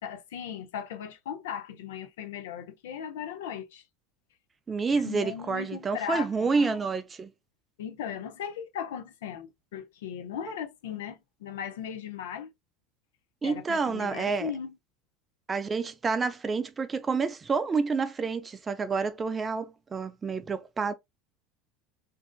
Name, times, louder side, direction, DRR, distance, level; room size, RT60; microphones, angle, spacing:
voice 1, 0.0-3.8 5.0-6.8 7.8-12.5 13.4-14.8, left 8 dB, 75° left, 0.5 m, -37 dB
voice 2, 4.7-7.3 13.4-14.5 15.5-20.9, right 4 dB, 25° right, 0.4 m, -29 dB
2.6 x 2.4 x 2.2 m
hypercardioid pair, 80°, 0 cm